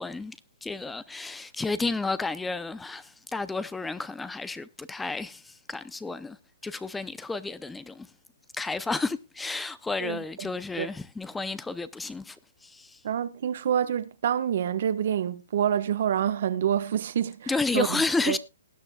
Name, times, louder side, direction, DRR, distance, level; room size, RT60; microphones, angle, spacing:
voice 1, 0.0-6.4 6.6-8.1 8.5-12.4 12.6-13.0 17.5-18.4, left 3 dB, 5° left, 0.6 m, -31 dB
voice 2, 10.0-10.5 10.8-10.9 13.0-17.9 18.3-18.4, right 9 dB, 60° right, 1.1 m, -27 dB
19.0 x 9.8 x 2.3 m
hypercardioid pair, 135°, 0 cm